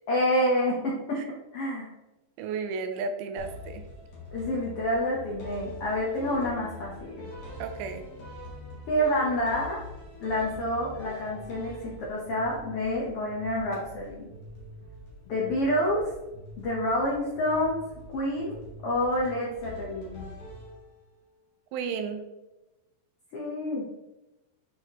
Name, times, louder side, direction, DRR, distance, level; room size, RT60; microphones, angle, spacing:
voice 1, 0.1-1.2 1.5-1.9 4.3-7.3 8.9-9.8 10.2-14.3 15.3-16.1 16.6-17.8 18.1-20.3 23.3-23.8, left 1 dB, 80° left, -4 dB, 1.3 m, -28 dB
voice 2, 2.4-3.9 7.6-8.1 21.7-22.2, right 5 dB, 85° right, 7 dB, 2.6 m, -33 dB
sound 1, 3.4-21.2, left 1 dB, 45° left, 2.0 m, -44 dB
8.4 x 4.8 x 3.0 m, 1.0 s
omnidirectional pair, 4.3 m